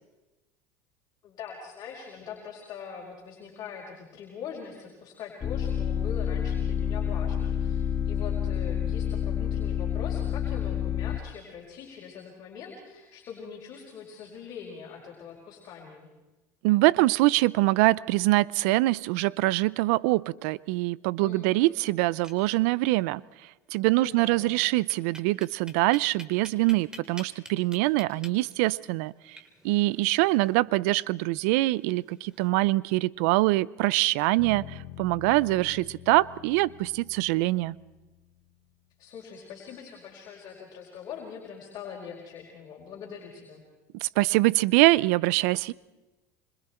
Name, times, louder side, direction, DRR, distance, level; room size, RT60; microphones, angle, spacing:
voice 1, 1.2-16.1 21.2-21.7 23.9-24.6 39.0-43.6, left 7 dB, 50° left, -2 dB, 4.9 m, -42 dB
sound 1, 5.4-11.2, left 8 dB, 35° left, 1.5 m, -28 dB
voice 2, 16.6-23.2 23.7-37.8 44.0-45.7, right 20 dB, 75° right, 22 dB, 0.6 m, -24 dB
sound 2, 22.1-23.0 23.3-23.4 23.7-23.8 24.6-32.5, right 1 dB, 10° right, 3.3 m, -49 dB
sound 3, 34.4-38.3, left 13 dB, 65° left, 4.2 m, -46 dB
26.0 x 25.5 x 4.5 m, 1.1 s
supercardioid pair, 105°, 8 cm